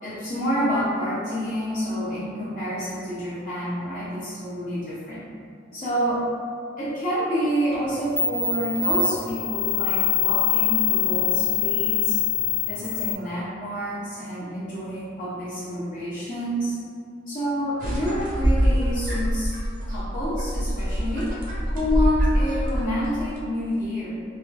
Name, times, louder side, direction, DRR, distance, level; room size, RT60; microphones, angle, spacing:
voice 1, 0.0-5.3 5.7-6.2 6.8-12.2 12.6-16.8 17.3-19.6 19.9-21.3 21.7-24.1, equal, 40° left, -11 dB, 0.7 m, -28 dB
sound 1, 7.7-7.8 8.2-13.1, left 8 dB, ahead, 0.4 m, -24 dB
sound 2, 17.8-23.4, equal, 45° right, 0.6 m, -24 dB
3.4 x 2.5 x 2.3 m, 2.3 s
head